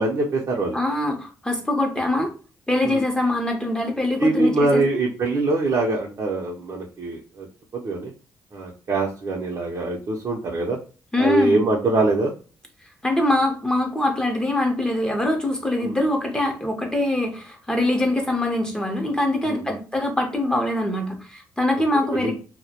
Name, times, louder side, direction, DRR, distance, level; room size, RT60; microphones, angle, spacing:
voice 1, 0.0-0.8 2.8-3.0 4.2-7.5 7.7-8.1 8.5-10.8 11.2-12.3 15.8-16.0 19.4-19.6 22.1-22.4, right 2 dB, 50° right, -2 dB, 0.6 m, -23 dB
voice 2, 0.7-2.3 2.7-4.8 11.1-11.6 13.0-22.4, left 1 dB, 10° left, 2 dB, 0.7 m, -23 dB
2.1 x 2.0 x 2.8 m, 0.36 s
supercardioid pair, 60°, 7 cm